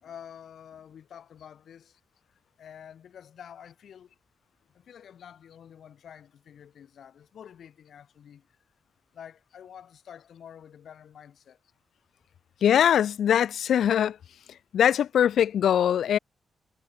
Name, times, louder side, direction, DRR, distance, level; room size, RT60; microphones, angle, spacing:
voice 1, 0.0-2.0 2.3-4.1 4.7-8.6 9.1-11.6, left 8 dB, 70° left, 3.6 m, -48 dB
voice 2, 12.6-14.2 14.7-16.2, left 9 dB, 85° left, 0.7 m, -22 dB
wide cardioid pair, 170°, 0 cm